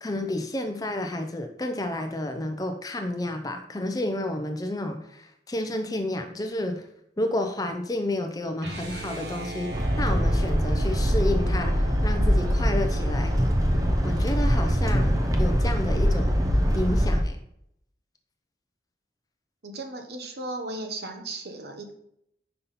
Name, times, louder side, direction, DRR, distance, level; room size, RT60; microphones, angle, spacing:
voice 1, 0.0-6.9 7.2-9.7 10.0-13.4 14.0-16.3 16.7-17.4, left 1 dB, 20° left, 6 dB, 0.6 m, -30 dB
sound 1, 8.6-14.6, right 1 dB, 80° right, 1.3 m, -38 dB
sound 2, 9.7-17.2, equal, 20° right, 0.6 m, -23 dB
voice 2, 19.6-21.9, right 2 dB, 65° right, 4 dB, 1.0 m, -36 dB
5.5 x 5.4 x 4.1 m, 0.74 s
head